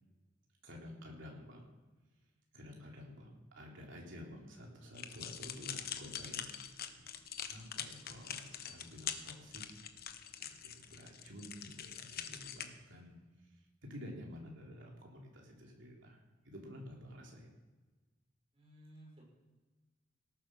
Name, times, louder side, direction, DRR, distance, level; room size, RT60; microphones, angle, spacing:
voice 1, 0.6-1.7 2.5-7.0 7.5-9.6 10.4-17.5, left 1 dB, 70° right, 0 dB, 3.4 m, -51 dB
sound 1, 4.9-12.6, left 9 dB, 50° left, 1.0 m, -44 dB
voice 2, 18.5-19.2, right 1 dB, 30° right, -3 dB, 6.1 m, -59 dB
18.0 x 8.4 x 6.3 m, 1.2 s
head